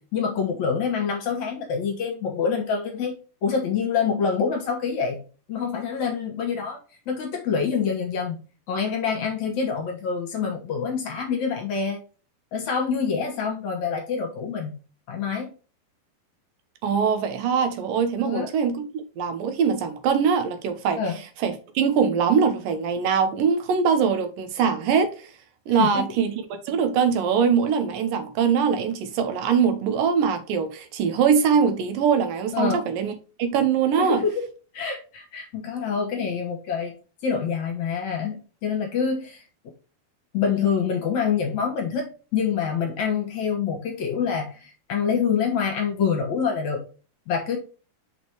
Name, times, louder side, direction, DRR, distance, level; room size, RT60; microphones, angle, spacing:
voice 1, 0.0-3.2 3.4-5.2 5.5-6.8 7.1-8.4 8.7-12.0 12.5-14.7 15.1-15.5 18.2-18.5 21.0-21.2 25.8-26.0 32.5-32.8 34.0-34.4 34.7-36.9 37.2-39.4 40.3-46.8 47.3-47.6, left 6 dB, 65° left, 2.1 m, -26 dB
voice 2, 16.8-21.0 21.4-25.3 25.7-33.1 33.4-34.2, right 6 dB, 70° right, 2.5 m, -22 dB
6.4 x 5.0 x 3.1 m
omnidirectional pair, 4.3 m